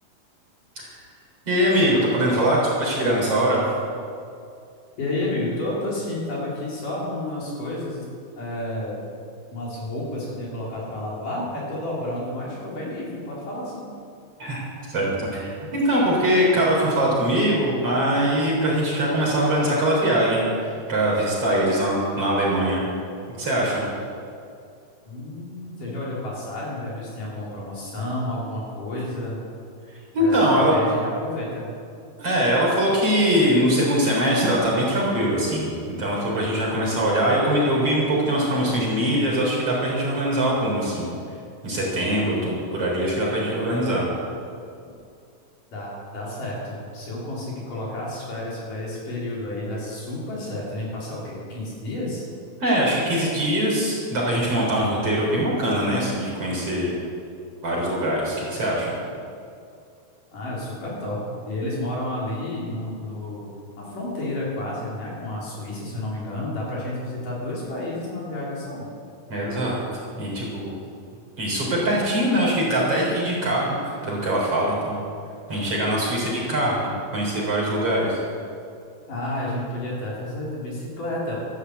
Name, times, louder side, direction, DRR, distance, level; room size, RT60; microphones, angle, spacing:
voice 1, 1.5-3.6 14.4-14.6 14.9-22.8 23.3-23.8 30.1-30.7 32.2-41.1 41.6-44.1 52.6-56.9 57.6-59.0 69.3-69.7 70.2-70.8 71.4-75.0 75.5-78.2, right 1 dB, 40° right, -4 dB, 4.3 m, -22 dB
voice 2, 5.0-8.1 8.4-8.9 9.5-13.9 25.1-29.4 30.2-31.7 45.7-52.2 60.3-63.5 63.8-68.8 79.1-81.4, left 1 dB, 55° left, -6 dB, 5.3 m, -31 dB
13.5 x 11.5 x 8.1 m, 2.4 s
omnidirectional pair, 4.5 m